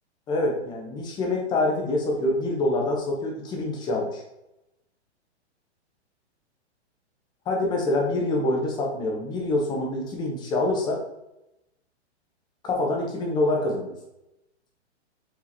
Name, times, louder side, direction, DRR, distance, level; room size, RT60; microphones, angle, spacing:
voice 1, 0.3-4.2 7.5-11.0 12.6-13.9, left 2 dB, 15° left, 0 dB, 0.7 m, -26 dB
5.0 x 3.7 x 2.8 m, 0.89 s
hypercardioid pair, 150°, 34 cm